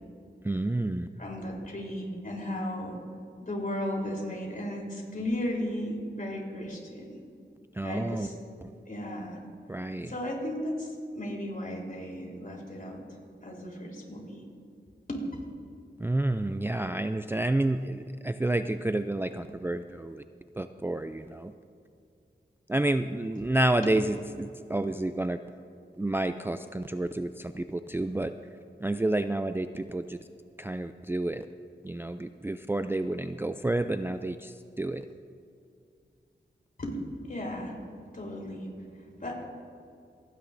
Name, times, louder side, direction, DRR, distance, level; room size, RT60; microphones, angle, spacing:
voice 1, 0.4-1.1 7.8-8.3 9.7-10.1 16.0-20.2 20.6-21.5 22.7-25.4 26.0-28.3 28.8-30.2 30.6-31.5 31.8-35.0, right 2 dB, 10° right, 9 dB, 0.3 m, -29 dB
voice 2, 1.2-3.0 3.4-7.1 7.8-8.3 8.9-9.4 10.1-13.0 13.4-14.4 15.1-15.2 36.8-36.9 37.2-37.7 38.1-39.5, left 1 dB, 45° left, -2 dB, 3.7 m, -35 dB
27.5 x 10.0 x 2.6 m, 2.5 s
wide cardioid pair, 60°, 19 cm